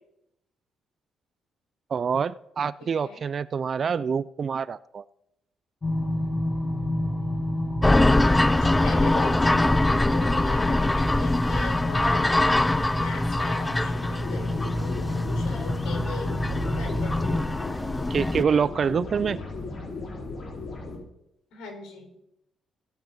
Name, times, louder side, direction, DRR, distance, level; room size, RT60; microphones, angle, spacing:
voice 1, 1.9-5.0 18.1-19.4, right 6 dB, 45° right, 19 dB, 0.4 m, -26 dB
voice 2, 2.8-3.2 7.9-16.3 16.7-17.4 21.5-22.1, left 5 dB, 85° left, 2 dB, 4.2 m, -40 dB
sound 1, 5.8-17.4, left 1 dB, 30° left, 2.3 m, -28 dB
sound 2, 7.8-18.4, left 2 dB, 15° left, 0.4 m, -24 dB
sound 3, 13.7-21.0, left 3 dB, 50° left, 4.6 m, -36 dB
17.5 x 8.3 x 3.9 m, 0.83 s
cardioid pair, 90°, 0 cm